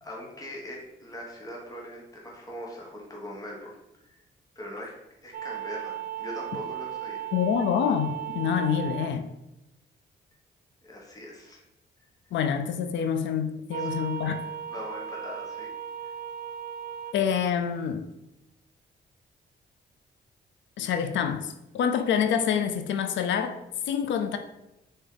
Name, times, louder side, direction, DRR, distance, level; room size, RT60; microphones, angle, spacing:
voice 1, 0.0-3.7 4.0-4.2 4.5-4.9 5.2-7.3 10.8-11.6 13.0-13.1 13.7-13.9 14.7-15.7 16.0-16.1, left 1 dB, 20° left, -3 dB, 1.3 m, -41 dB
sound 1, 5.3-9.1 13.7-17.1, right 10 dB, 50° right, 0.4 m, -36 dB
voice 2, 7.3-9.3 12.3-14.4 17.1-18.1 20.8-23.6 23.9-24.4, left 8 dB, 75° left, 8 dB, 0.4 m, -26 dB
3.9 x 3.5 x 3.8 m, 0.91 s
cardioid pair, 75°, 19 cm